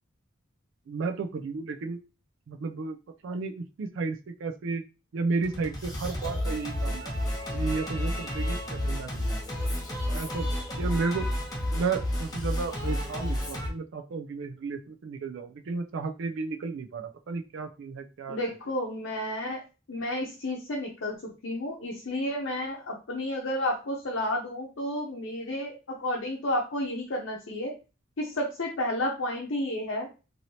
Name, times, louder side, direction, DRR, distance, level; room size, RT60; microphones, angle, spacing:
voice 1, 0.9-2.0 2.5-3.0 3.2-4.8 5.1-7.1 7.5-9.4 9.8-9.9 10.1-10.5 10.8-11.3 11.7-18.4, right 4 dB, 65° right, 5 dB, 0.4 m, -33 dB
Singing, 5.4-13.7, left 1 dB, 20° left, 0.8 m, -31 dB
voice 2, 18.3-19.6 19.9-27.8 28.2-30.1, left 1 dB, 75° left, -2 dB, 0.7 m, -31 dB
3.1 x 2.7 x 2.7 m, 0.31 s
head